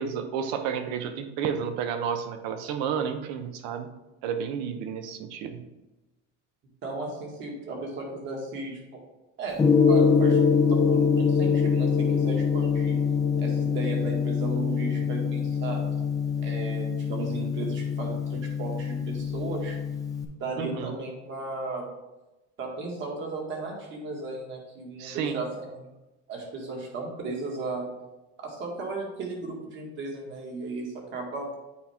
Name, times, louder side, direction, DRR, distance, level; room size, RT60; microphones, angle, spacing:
voice 1, 0.0-3.9 4.2-5.6 20.6-20.9 25.0-25.4, right 7 dB, 65° right, 8 dB, 0.8 m, -31 dB
voice 2, 6.8-9.0 9.4-9.6 9.9-13.0 13.4-15.8 16.4-19.8 20.4-21.8 22.6-25.9 26.3-27.9 28.4-31.5, right 3 dB, 40° right, 0 dB, 1.8 m, -35 dB
Gong, 9.6-20.2, left 6 dB, 10° left, 0.6 m, -24 dB
8.6 x 4.3 x 3.5 m, 1.0 s
cardioid pair, 145°, 29 cm